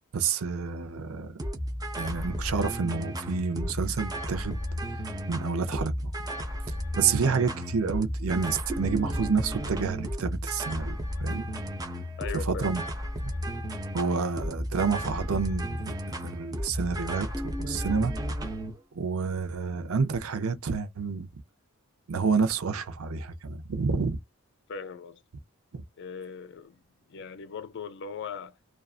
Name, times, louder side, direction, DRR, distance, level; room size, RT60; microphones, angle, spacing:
voice 1, 0.1-1.4 2.0-4.6 5.3-6.1 6.7-11.5 12.4-12.8 13.2-13.3 13.9-15.8 16.2-17.3 17.6-18.1 19.0-21.3 22.1-24.2 25.7-25.8, right 5 dB, 75° right, 0.6 m, -29 dB
sound 1, 1.4-18.7, equal, 15° right, 0.5 m, -33 dB
voice 2, 12.2-12.7 24.7-25.2 26.0-26.8 27.1-28.6, left 5 dB, 55° left, 0.4 m, -39 dB
2.5 x 2.2 x 2.3 m
head